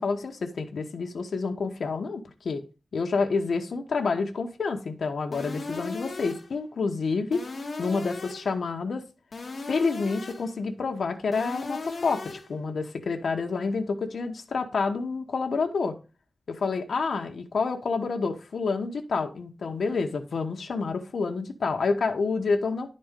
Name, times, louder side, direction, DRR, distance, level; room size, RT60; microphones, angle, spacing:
voice 1, 0.0-2.6 2.9-7.4 7.8-9.0 9.7-16.0 16.5-22.9, left 4 dB, 85° left, 1.0 m, -28 dB
sound 1, 5.3-6.6 7.3-8.6 9.3-10.6 11.3-12.6, left 3 dB, 50° left, 1.2 m, -37 dB
10.5 x 4.3 x 5.0 m
wide cardioid pair, 135°, 0 cm